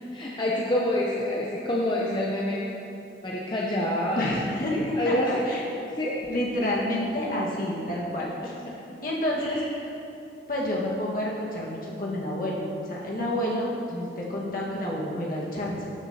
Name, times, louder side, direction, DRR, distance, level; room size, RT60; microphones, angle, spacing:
voice 1, 0.0-2.6 3.2-4.3 4.7-5.4 6.0-6.2 9.4-9.7, left 1 dB, 25° left, -4 dB, 0.6 m, -27 dB
voice 2, 4.1-5.7 6.3-8.5 9.0-9.6 10.5-15.9, left 1 dB, 50° left, -4 dB, 1.5 m, -29 dB
12.5 x 6.9 x 2.8 m, 2.8 s
head